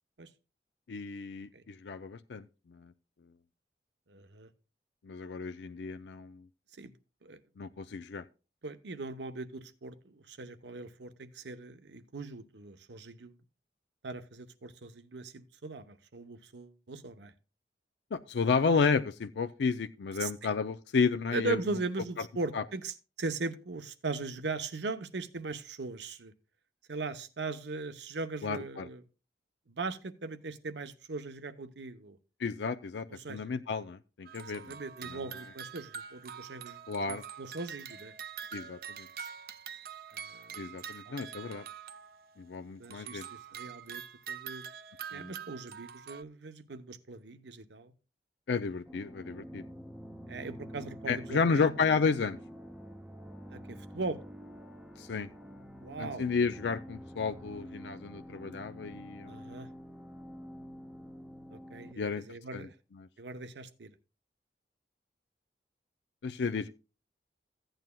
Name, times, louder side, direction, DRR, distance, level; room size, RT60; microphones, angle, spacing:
voice 1, 0.9-2.5 2.7-2.9 5.0-6.4 7.6-8.2 18.1-21.6 22.5-22.6 28.4-28.9 32.4-34.8 35.1-35.2 36.9-37.2 38.5-39.1 40.6-41.6 42.4-43.3 45.1-45.3 48.5-49.6 51.1-52.4 55.0-55.3 56.0-59.4 62.0-62.2 62.5-62.7 66.2-66.7, left 5 dB, 85° left, 0.4 m, -32 dB
voice 2, 4.1-4.5 6.8-6.9 7.2-7.4 8.6-13.4 14.0-17.3 20.2-20.3 21.3-26.3 26.9-29.0 29.7-32.2 33.1-33.4 34.4-38.1 40.1-41.5 42.8-44.7 45.1-47.9 50.3-51.6 53.5-54.2 55.8-56.3 59.2-59.7 61.5-62.7 63.2-63.9, right 3 dB, 85° right, 0.8 m, -40 dB
sound 1, 34.3-42.5 42.8-46.2, right 8 dB, 55° right, 0.4 m, -45 dB
sound 2, 48.9-61.9, equal, 5° right, 0.6 m, -47 dB
15.0 x 9.0 x 2.2 m
head